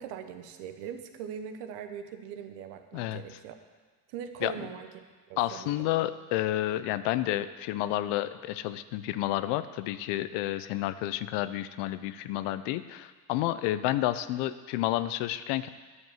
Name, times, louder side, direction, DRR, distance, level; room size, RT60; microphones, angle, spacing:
voice 1, 0.0-3.5 4.1-4.9 5.3-5.9, right 8 dB, 75° right, 8 dB, 1.0 m, -41 dB
voice 2, 5.4-15.7, left 14 dB, 70° left, 13 dB, 0.6 m, -30 dB
9.6 x 5.2 x 7.4 m, 1.4 s
supercardioid pair, 90°, 43 cm